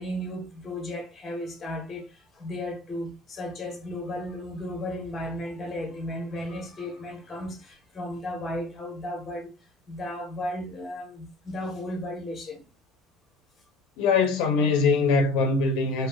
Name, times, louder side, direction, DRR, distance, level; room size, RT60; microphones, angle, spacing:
voice 1, 0.0-9.5 9.9-12.6, left 1 dB, 20° left, 1.1 m, -35 dB
voice 2, 14.0-16.1, left 4 dB, 80° left, 0.6 m, -22 dB
3.1 x 2.8 x 2.3 m
cardioid pair, 155°, 0 cm